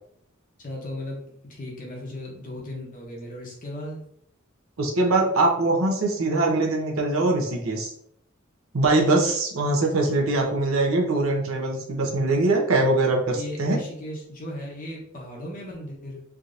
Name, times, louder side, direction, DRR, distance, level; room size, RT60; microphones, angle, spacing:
voice 1, 0.6-1.2 1.5-4.0 13.3-16.2, left 1 dB, 40° left, -2 dB, 0.9 m, -36 dB
voice 2, 4.8-7.9 8.7-13.8, right 2 dB, 80° right, 1 dB, 0.8 m, -22 dB
3.5 x 2.8 x 2.5 m, 0.69 s
head